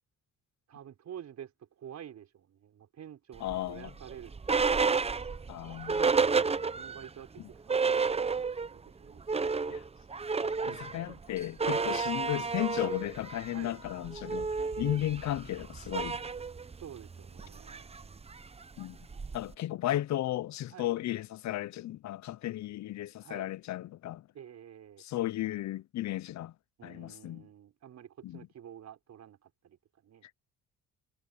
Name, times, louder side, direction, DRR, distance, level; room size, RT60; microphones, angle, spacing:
voice 1, 0.7-1.5 1.8-4.9 6.7-9.2 10.6-11.3 13.5-13.8 16.8-17.9 20.7-21.0 23.2-23.5 24.3-25.0 26.8-30.3, right 9 dB, 65° right, 5.0 m, -49 dB
voice 2, 3.4-3.9 5.5-6.1 7.4-7.5 9.7-9.8 10.7-16.2 18.8-19.0 19.3-24.3 25.0-26.5 26.8-27.5 28.2-28.5, left 14 dB, 65° left, 0.7 m, -35 dB
sound 1, 3.5-7.1 7.4-7.5 7.7-8.8 9.1-19.5, right 5 dB, 20° right, 0.7 m, -31 dB
cardioid pair, 90°, 30 cm